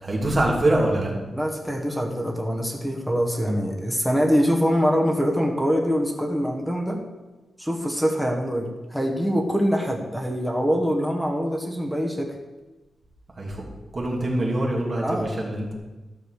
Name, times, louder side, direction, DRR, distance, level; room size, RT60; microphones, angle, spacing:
voice 1, 0.0-1.1 13.4-13.6 13.9-15.7, right 1 dB, 25° right, -3 dB, 2.8 m, -24 dB
voice 2, 1.3-7.0 7.6-12.3 15.0-15.3, equal, ahead, 0 dB, 1.4 m, -24 dB
13.0 x 6.6 x 6.6 m, 1.1 s
wide cardioid pair, 180°, 0 cm